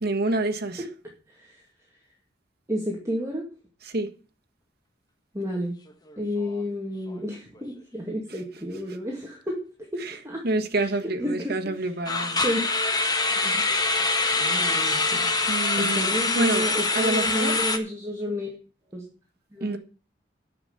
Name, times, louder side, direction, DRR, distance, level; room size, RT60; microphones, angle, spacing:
voice 1, 0.0-0.8 3.8-4.2 10.0-10.1 10.4-12.4 15.5-16.7 16.9-17.6 19.6-19.8, right 2 dB, 60° right, 1.4 m, -27 dB
voice 2, 1.3-1.6 2.7-3.5 5.3-5.8 6.2-10.4 11.2-11.8 12.4-12.6 13.3-14.0 14.4-15.3 15.8-18.6 18.9-19.1 19.5-19.8, equal, 15° right, 2.2 m, -31 dB
sound 1, 5.9-6.1 6.4-6.6 7.1-7.2 12.1-17.8, left 3 dB, 20° left, 1.3 m, -24 dB
10.0 x 6.5 x 7.9 m
head